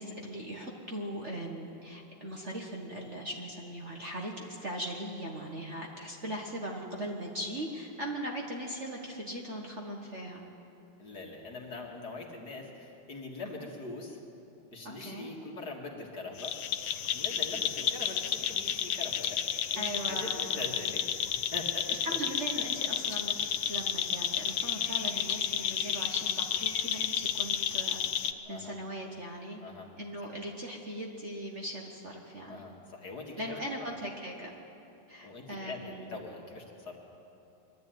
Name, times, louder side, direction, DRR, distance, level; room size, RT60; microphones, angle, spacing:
voice 1, 0.0-10.4 15.0-15.3 19.8-20.8 21.9-23.3 23.7-28.2 28.5-29.6 30.0-32.6 33.4-34.5 35.1-36.1, right 1 dB, 35° right, -1 dB, 1.5 m, -39 dB
voice 2, 11.0-14.2 14.7-16.5 17.1-19.4 19.7-22.2 28.5-28.7 29.6-29.9 32.5-33.6 35.2-37.0, left 3 dB, 50° left, -1 dB, 2.6 m, -42 dB
sound 1, 16.4-28.3, left 9 dB, 70° left, 1.4 m, -32 dB
22.5 x 12.5 x 9.2 m, 2.9 s
omnidirectional pair, 2.4 m